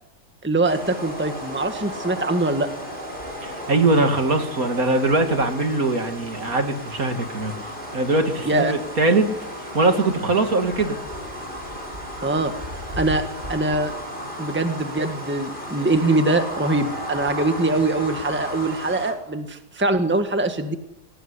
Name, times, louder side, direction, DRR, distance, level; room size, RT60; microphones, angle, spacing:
voice 1, 0.4-2.7 8.4-8.7 12.2-12.5 13.0-13.2 13.5-13.9 14.4-20.8, right 2 dB, 5° right, 1.7 m, -23 dB
sound 1, 0.6-19.1, equal, 30° right, 6.4 m, -34 dB
voice 2, 3.4-7.5 7.9-9.3 9.7-11.0, right 2 dB, 55° right, 2.7 m, -21 dB
21.5 x 20.0 x 9.8 m
omnidirectional pair, 1.7 m